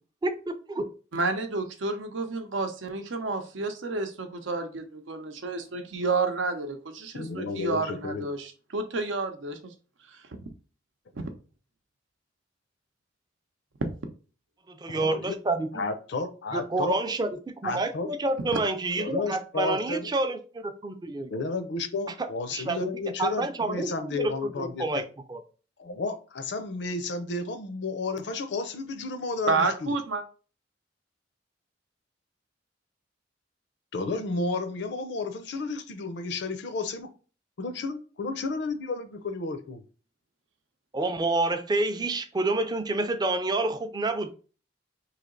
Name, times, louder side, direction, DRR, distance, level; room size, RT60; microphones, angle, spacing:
voice 1, 0.2-0.9 14.7-15.9 16.5-21.3 22.5-22.9 23.2-25.0 25.3-25.4 40.9-43.7 43.9-44.3, right 2 dB, 20° right, 8 dB, 0.4 m, -28 dB
voice 2, 1.1-9.7 10.1-10.2 11.1-11.3 18.5-18.6 29.5-30.2, right 3 dB, 85° right, 7 dB, 0.7 m, -30 dB
voice 3, 7.1-8.2 14.9-15.4 15.7-17.0 17.6-18.1 19.0-20.1 21.3-25.0 25.8-30.0 33.9-37.1 37.6-39.8, left 3 dB, 65° left, 9 dB, 0.6 m, -32 dB
3.3 x 2.8 x 3.8 m, 0.37 s
head